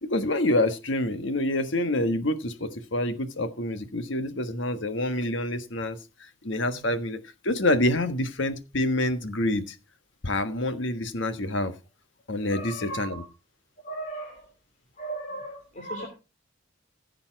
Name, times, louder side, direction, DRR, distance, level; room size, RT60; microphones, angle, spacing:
voice 1, 0.0-7.2 7.4-9.8 10.2-11.7 12.3-13.1, left 1 dB, 65° left, 10 dB, 1.4 m, -27 dB
voice 2, 12.5-13.3 13.8-14.5 14.9-16.1, right 2 dB, 40° left, 1 dB, 2.9 m, -37 dB
15.5 x 6.9 x 4.6 m, 0.30 s
head